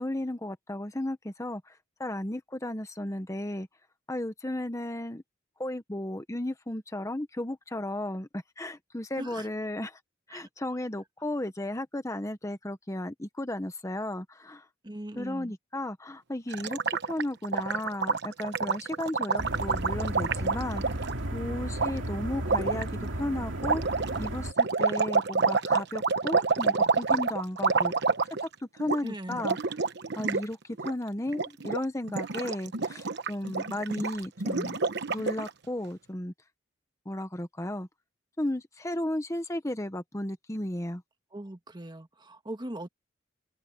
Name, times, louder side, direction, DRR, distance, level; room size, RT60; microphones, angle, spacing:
voice 1, 0.0-3.7 4.1-5.2 5.6-10.0 10.3-14.7 15.2-20.8 21.3-27.9 28.4-29.6 30.2-30.6 30.8-34.8 35.1-36.3 37.0-37.9 38.4-41.0, left 1 dB, 15° left, 1.1 m, -34 dB
voice 2, 9.2-9.5 10.3-10.5 14.8-15.5 29.0-29.5 41.3-42.9, right 1 dB, 25° right, 1.6 m, -40 dB
Gurgling, 16.5-21.1 21.8-21.9 22.4-22.8 23.6-28.5 28.8-29.0 29.3-30.4 30.7-30.9 31.3-31.8 32.1-35.5, right 4 dB, 60° right, 1.1 m, -28 dB
sound 1, 19.4-24.5, right 1 dB, 80° right, 2.5 m, -34 dB
open air
head